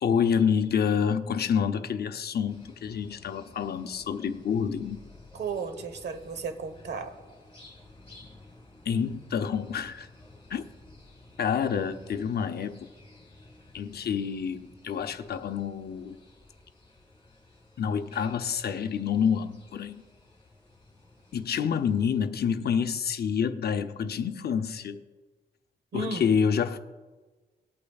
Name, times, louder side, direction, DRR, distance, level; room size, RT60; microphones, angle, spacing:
voice 1, 0.0-5.0 8.9-10.1 10.5-10.6 11.4-12.9 13.7-16.2 17.8-20.0 21.3-25.0 25.9-26.8, left 7 dB, 65° left, 0.6 m, -28 dB
sound 1, 2.5-22.2, left 2 dB, 30° left, 3.9 m, -54 dB
voice 2, 5.3-7.1 25.9-26.3, right 4 dB, 80° right, 1.1 m, -34 dB
19.5 x 8.5 x 2.4 m
wide cardioid pair, 140°, 18 cm